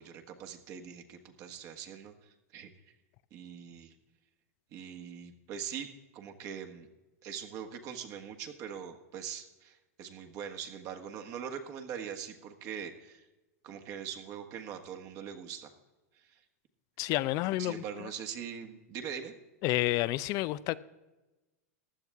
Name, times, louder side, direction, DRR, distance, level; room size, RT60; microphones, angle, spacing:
voice 1, 0.0-2.7 3.3-3.9 4.7-5.9 6.1-6.9 7.2-13.2 13.6-15.7 16.3-16.4 17.6-19.3, right 8 dB, 45° right, 1.5 m, -42 dB
voice 2, 17.0-18.1 19.6-20.8, left 17 dB, 45° left, 0.5 m, -30 dB
15.0 x 11.0 x 3.6 m
hypercardioid pair, 115°, 8 cm